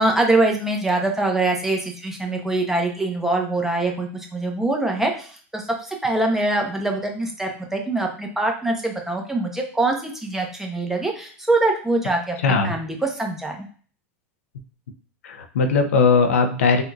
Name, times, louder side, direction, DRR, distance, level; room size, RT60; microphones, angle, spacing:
voice 1, 0.0-13.7, right 2 dB, 5° right, 1 dB, 0.8 m, -23 dB
voice 2, 12.4-12.7 15.2-16.8, left 4 dB, 90° left, 6 dB, 0.5 m, -19 dB
3.6 x 2.7 x 2.3 m, 0.43 s
supercardioid pair, 115°, 7 cm